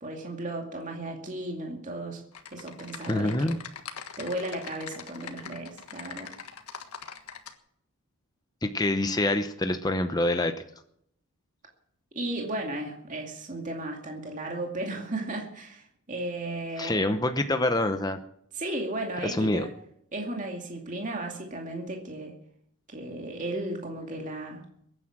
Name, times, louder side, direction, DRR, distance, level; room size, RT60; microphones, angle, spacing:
voice 1, 0.0-3.5 4.2-6.3 12.1-17.1 18.5-19.7 20.1-22.4 22.9-24.7, right 1 dB, 35° right, 1 dB, 2.3 m, -35 dB
Typing, 2.3-7.5, left 7 dB, 85° left, 1.6 m, -42 dB
voice 2, 3.1-3.6 8.6-10.5 16.8-18.2 19.2-19.6, left 1 dB, 15° left, 8 dB, 0.8 m, -26 dB
22.0 x 9.8 x 6.1 m, 0.70 s
head